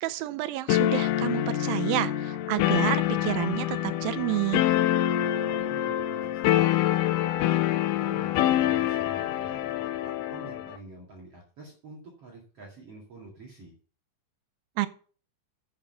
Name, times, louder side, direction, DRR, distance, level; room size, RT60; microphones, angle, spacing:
voice 1, 0.0-4.6 14.8-14.9, right 15 dB, 90° right, 12 dB, 2.5 m, -29 dB
sound 1, 0.7-10.8, left 13 dB, 80° left, 2.2 m, -26 dB
voice 2, 5.2-7.6 8.0-13.7, right 2 dB, 45° right, -3 dB, 2.9 m, -47 dB
8.6 x 7.5 x 5.7 m, 0.42 s
omnidirectional pair, 4.0 m